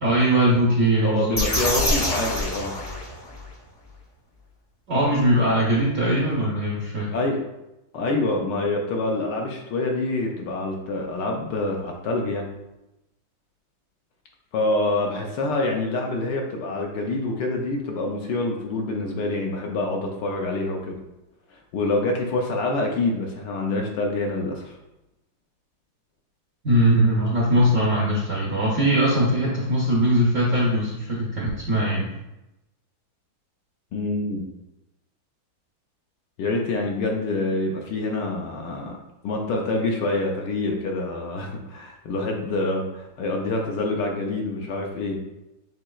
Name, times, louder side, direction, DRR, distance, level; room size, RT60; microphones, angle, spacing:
voice 1, 0.0-1.4 4.9-7.1 26.6-32.1, right 1 dB, 65° right, -5 dB, 0.8 m, -21 dB
voice 2, 1.0-2.7 7.1-7.4 7.9-12.5 14.5-21.0 21.5-24.8 33.9-34.5 36.4-38.9 39.2-45.2, left 2 dB, 70° left, 1 dB, 1.1 m, -26 dB
sound 1, 1.3-3.5, left 1 dB, 35° left, 0.4 m, -25 dB
7.3 x 2.8 x 2.3 m, 0.94 s
omnidirectional pair, 2.2 m